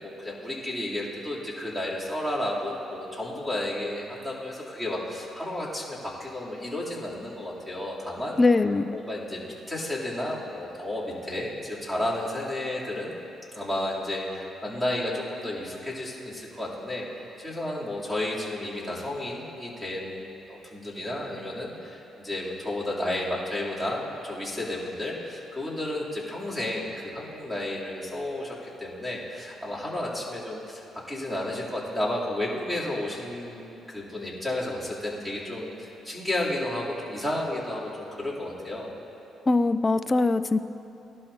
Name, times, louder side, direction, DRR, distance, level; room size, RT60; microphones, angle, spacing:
voice 1, 0.0-8.4 8.9-9.4 9.7-13.1 13.5-38.9, left 1 dB, 5° right, -7 dB, 3.3 m, -32 dB
voice 2, 8.4-8.9 39.5-40.6, left 3 dB, 25° left, 11 dB, 0.4 m, -22 dB
18.5 x 12.0 x 2.9 m, 2.9 s
cardioid pair, 90°, 0 cm